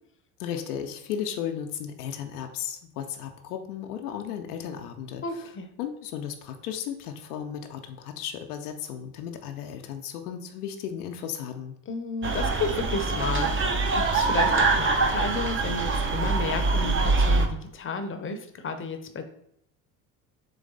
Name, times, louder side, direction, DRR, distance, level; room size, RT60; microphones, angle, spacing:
voice 1, 0.4-5.5 5.8-11.7, left 9 dB, 85° left, 4 dB, 0.6 m, -35 dB
voice 2, 5.2-5.7 11.9-19.2, left 4 dB, 30° left, 7 dB, 0.6 m, -32 dB
sound 1, 12.2-17.5, right 3 dB, 30° right, 0.6 m, -24 dB
3.9 x 3.2 x 3.8 m, 0.71 s
hypercardioid pair, 70°, 45 cm